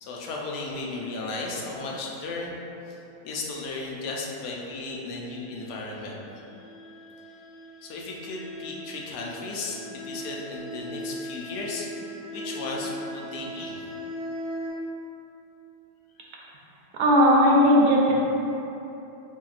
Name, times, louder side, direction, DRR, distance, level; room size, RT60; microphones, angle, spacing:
voice 1, 0.0-2.6 2.9-6.2 7.8-13.9, left 3 dB, 80° left, -2 dB, 1.1 m, -35 dB
sound 1, 5.7-14.7, equal, 60° left, 1.0 m, -39 dB
voice 2, 17.0-18.1, equal, 75° right, -3 dB, 1.0 m, -17 dB
4.3 x 3.1 x 2.3 m, 3.0 s
omnidirectional pair, 1.7 m